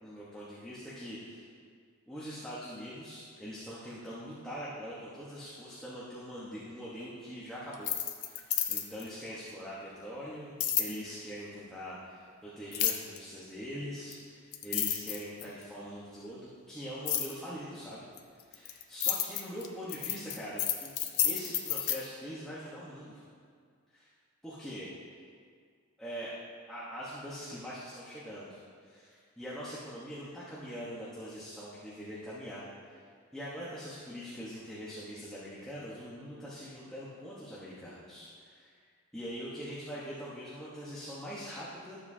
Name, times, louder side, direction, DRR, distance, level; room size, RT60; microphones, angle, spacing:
voice 1, 0.0-1.4 2.1-7.9 8.2-18.1 18.5-20.9 21.2-23.2 23.9-24.1 24.4-24.9 26.0-26.4 26.7-33.0 33.3-38.7 39.1-42.0, equal, 5° left, -10 dB, 1.1 m, -43 dB
sound 1, 7.7-9.1 10.6-10.9 12.7-13.2 14.1-14.2 14.5-15.6 17.1-17.3 18.2-22.0, left 10 dB, 85° left, 0.7 m, -30 dB
12.0 x 7.4 x 2.7 m, 2.1 s
head